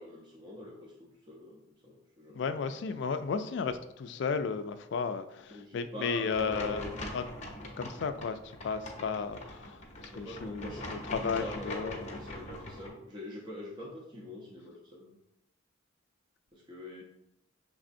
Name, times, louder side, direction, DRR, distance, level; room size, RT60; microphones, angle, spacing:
voice 1, 0.0-2.5 3.0-3.1 5.5-6.9 10.0-15.2 16.5-17.0, left 1 dB, 20° right, 0.6 m, -44 dB
voice 2, 2.3-6.8 7.1-7.2 7.8-8.4 8.6-9.8 10.1-12.1, left 5 dB, 60° left, 0.3 m, -34 dB
sound 1, 6.3-12.9, left 1 dB, 35° left, 0.8 m, -42 dB
6.2 x 3.4 x 2.5 m
head